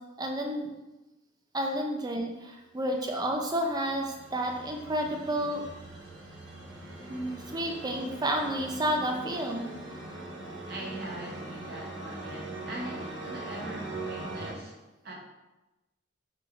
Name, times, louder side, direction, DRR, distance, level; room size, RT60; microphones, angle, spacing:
voice 1, 0.2-0.7 1.5-5.6 7.1-9.7, equal, 20° right, 2 dB, 0.5 m, -31 dB
sound 1, 3.0-14.5, right 2 dB, 80° right, 1.0 m, -42 dB
voice 2, 10.7-15.1, right 1 dB, 55° right, -2 dB, 1.0 m, -41 dB
3.9 x 3.5 x 3.4 m, 1.0 s
head